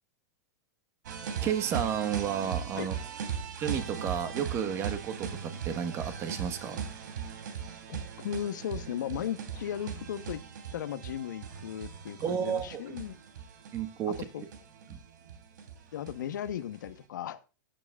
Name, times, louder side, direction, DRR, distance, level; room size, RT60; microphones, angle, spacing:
sound 1, 1.0-16.9, right 7 dB, 80° right, 3.2 m, -39 dB
voice 1, 1.4-3.0 3.6-6.8 12.2-12.9 13.7-14.5 14.9-15.0, right 8 dB, 30° right, 1.5 m, -32 dB
voice 2, 7.9-10.4 10.7-13.1 14.1-14.4 15.9-17.4, left 10 dB, 90° left, 1.2 m, -36 dB
14.0 x 9.2 x 2.4 m
supercardioid pair, 155°, 10 cm